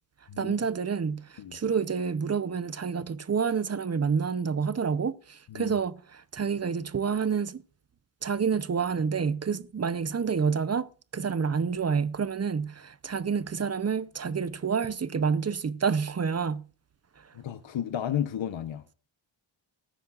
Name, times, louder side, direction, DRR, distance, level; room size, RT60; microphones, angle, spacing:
voice 1, 0.4-7.6 8.2-16.6, right 6 dB, 30° right, 0.6 m, -28 dB
voice 2, 17.3-18.9, left 10 dB, 65° left, 0.9 m, -33 dB
19.0 x 10.0 x 2.4 m
wide cardioid pair, 145°, 48 cm